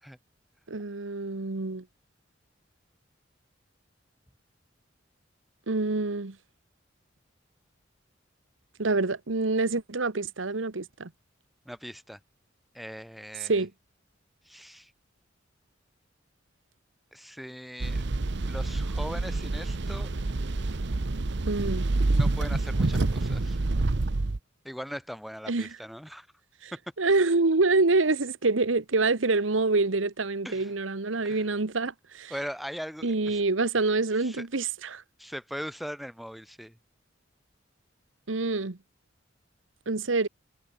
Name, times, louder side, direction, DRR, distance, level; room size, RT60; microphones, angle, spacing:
voice 1, 0.7-1.8 5.7-6.4 8.8-11.1 13.4-13.7 21.5-21.8 25.5-25.8 26.6-26.7 27.0-32.3 33.0-35.0 38.3-38.8 39.9-40.3, right 3 dB, 85° right, 1.2 m, -26 dB
voice 2, 11.6-12.2 12.7-13.6 14.4-14.9 17.1-18.0 18.5-20.1 22.2-23.6 24.6-26.3 26.7-26.8 30.4-30.7 31.2-31.5 32.3-33.4 34.2-34.4 35.2-36.8, equal, ahead, 3.4 m, -40 dB
sound 1, 17.8-24.4, right 2 dB, 65° right, 0.9 m, -27 dB
head